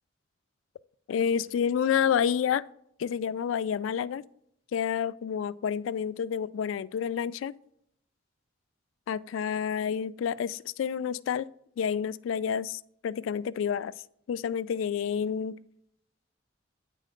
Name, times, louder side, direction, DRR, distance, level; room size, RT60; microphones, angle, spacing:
voice 1, 1.1-2.6 3.0-4.2 4.7-7.5 9.1-11.5 11.8-13.9 14.3-15.6, left 8 dB, 85° left, 0.3 m, -29 dB
9.1 x 4.1 x 5.0 m
head